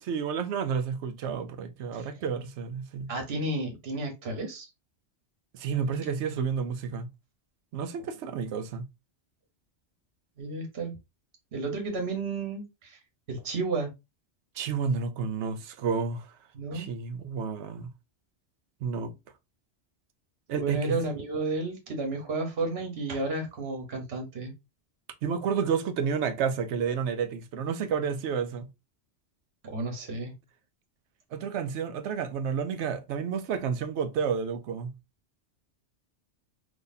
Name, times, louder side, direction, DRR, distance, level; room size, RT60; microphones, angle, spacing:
voice 1, 0.0-3.1 5.5-7.1 7.7-8.8 14.6-16.3 16.7-17.9 18.8-19.1 20.5-21.0 25.2-28.7 31.3-34.9, right 6 dB, 80° right, 0.9 m, -30 dB
voice 2, 3.1-4.7 10.4-10.9 11.5-13.0 13.3-13.9 16.5-16.9 20.5-24.5 29.6-30.3, right 3 dB, 65° right, 1.3 m, -32 dB
3.9 x 2.8 x 2.6 m
omnidirectional pair, 1.2 m